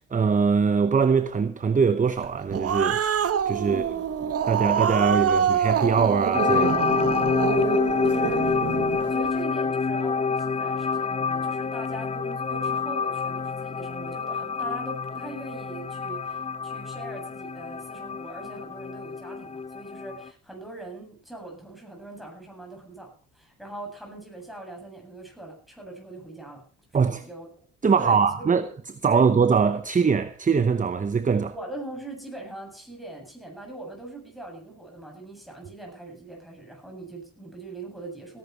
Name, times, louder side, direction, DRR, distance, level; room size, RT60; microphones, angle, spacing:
voice 1, 0.0-3.0 3.5-3.8 4.4-6.8 26.9-27.2 27.8-31.5, right 5 dB, 25° right, 0.9 m, -22 dB
Growling, 2.2-9.0, right 8 dB, 50° right, 1.1 m, -26 dB
voice 2, 3.7-4.1 7.5-8.6 8.9-26.6 27.0-27.5 28.0-28.6 29.1-29.2 31.5-38.4, right 2 dB, ahead, 7.7 m, -41 dB
sound 1, 6.3-20.3, left 5 dB, 20° left, 0.7 m, -27 dB
17.5 x 11.0 x 4.6 m
cardioid pair, 90°, 30 cm